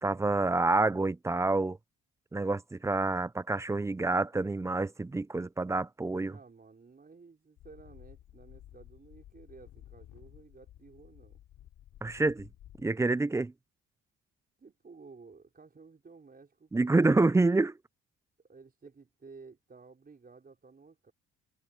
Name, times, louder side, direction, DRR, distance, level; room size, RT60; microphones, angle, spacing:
voice 1, 0.0-1.8 2.3-6.3 12.0-12.5 12.8-13.5 16.7-17.8, right 3 dB, 10° right, 0.4 m, -27 dB
voice 2, 6.1-11.4 14.6-17.2 18.4-21.1, right 4 dB, 30° right, 4.7 m, -54 dB
sound 1, 7.6-12.8, left 12 dB, 80° left, 2.9 m, -54 dB
cardioid pair, 90°, 30 cm